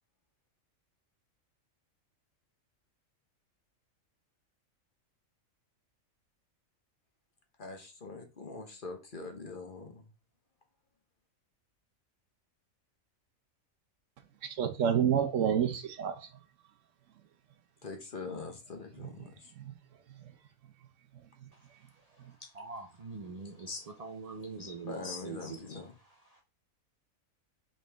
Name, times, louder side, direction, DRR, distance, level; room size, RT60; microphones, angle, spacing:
voice 1, 7.6-10.0 17.8-19.5 24.9-25.9, left 3 dB, 40° left, 1.1 m, -43 dB
voice 2, 14.4-16.3 19.6-19.7, right 8 dB, 70° right, 1.1 m, -28 dB
voice 3, 22.4-25.8 26.3-26.4, right 2 dB, 40° right, 0.6 m, -43 dB
5.6 x 5.1 x 3.4 m
omnidirectional pair, 1.4 m